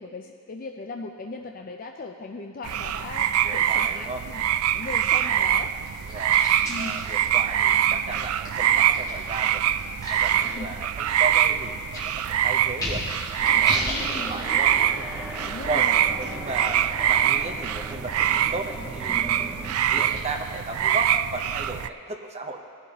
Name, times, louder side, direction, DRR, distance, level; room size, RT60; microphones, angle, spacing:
voice 1, 0.0-4.4 4.7-5.7 6.7-7.0 10.4-10.8 13.9-14.3 15.4-16.0, left 3 dB, 40° left, 3 dB, 0.4 m, -38 dB
sound 1, 2.6-21.9, right 10 dB, 75° right, 0.3 m, -24 dB
voice 2, 3.4-4.2 6.0-6.4 6.7-9.6 10.1-15.9 16.2-16.8 17.1-19.6 19.9-22.6, right 2 dB, 30° right, 4 dB, 0.8 m, -35 dB
sound 2, 4.0-21.0, left 1 dB, 20° left, 3.0 m, -39 dB
sound 3, 13.4-19.7, right 1 dB, ahead, 1.5 m, -39 dB
18.0 x 11.0 x 2.9 m, 2.3 s
head